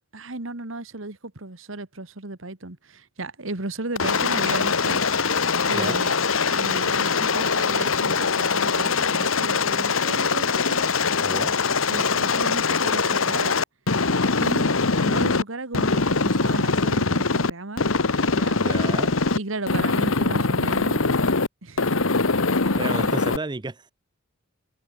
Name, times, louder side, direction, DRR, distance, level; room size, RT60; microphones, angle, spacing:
voice 1, 0.0-5.0 5.7-6.2 6.5-10.9 11.9-13.6 14.4-17.9 18.3-18.6 19.3-21.0 21.6-21.9 22.5-23.2, right 2 dB, 70° right, 2.0 m, -35 dB
Aircraft, 4.0-15.4 15.7-17.5 17.8-19.4 19.7-21.5 21.8-23.4, left 4 dB, 80° left, 1.6 m, -22 dB
voice 2, 11.2-11.5 18.6-19.2 22.6-23.9, right 2 dB, 20° right, 0.6 m, -32 dB
head